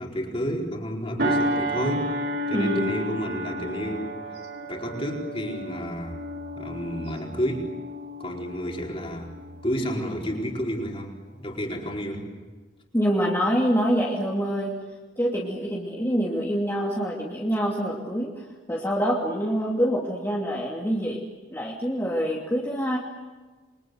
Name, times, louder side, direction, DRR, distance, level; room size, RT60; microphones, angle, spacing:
voice 1, 0.0-2.1 2.5-4.1 4.7-6.2 6.6-7.7 8.2-9.3 9.6-12.3, equal, 30° left, 0 dB, 4.7 m, -30 dB
sound 1, 1.2-10.0 10.5-10.7, equal, 55° right, 4.1 m, -31 dB
voice 2, 2.5-2.9 12.9-14.7 15.2-18.3 18.7-21.2 21.5-23.0, equal, 15° left, -4 dB, 2.7 m, -25 dB
29.0 x 24.0 x 8.1 m, 1.3 s
head